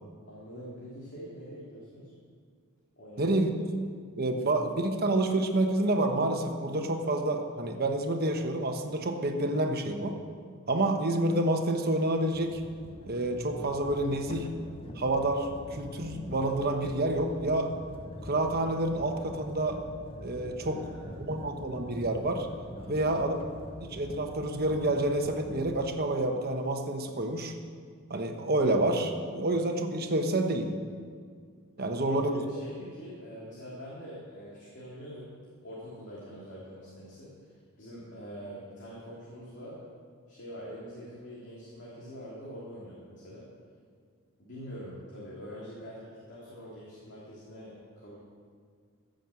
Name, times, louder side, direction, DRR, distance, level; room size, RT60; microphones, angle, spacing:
voice 1, 0.2-2.1 3.0-3.4 20.6-21.2 22.8-23.1 31.8-35.3 35.6-39.8 40.3-43.4 44.4-48.2, equal, 55° left, -7 dB, 2.9 m, -45 dB
voice 2, 3.2-3.6 4.1-10.2 10.7-12.6 13.1-14.5 14.9-17.7 18.2-19.8 20.2-22.5 22.9-23.4 23.8-27.5 28.1-30.7 31.8-32.4, right 1 dB, 45° right, 5 dB, 1.2 m, -28 dB
sound 1, 12.3-25.8, left 1 dB, 25° left, 0.9 m, -44 dB
15.0 x 6.6 x 7.7 m, 2.1 s
head